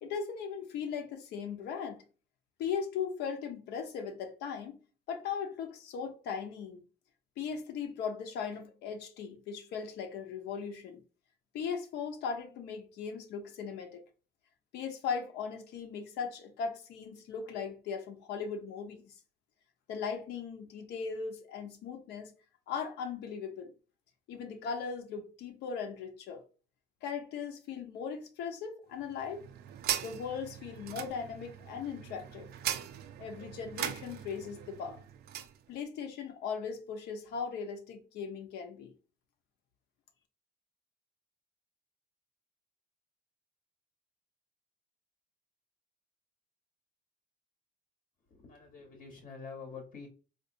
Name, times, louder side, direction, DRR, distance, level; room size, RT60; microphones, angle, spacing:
voice 1, 0.0-2.0 2.6-4.8 5.1-6.8 7.4-11.0 11.5-14.0 14.7-19.1 19.9-22.3 22.7-23.7 24.3-26.4 27.0-29.5 30.0-32.5 33.2-35.0 35.7-38.9, left 6 dB, 75° left, 0.9 m, -38 dB
sound 1, 29.0-35.6, right 10 dB, 70° right, 0.5 m, -40 dB
voice 2, 48.3-50.1, left 5 dB, 50° left, 1.0 m, -46 dB
4.0 x 2.6 x 2.6 m
cardioid pair, 110°, 17 cm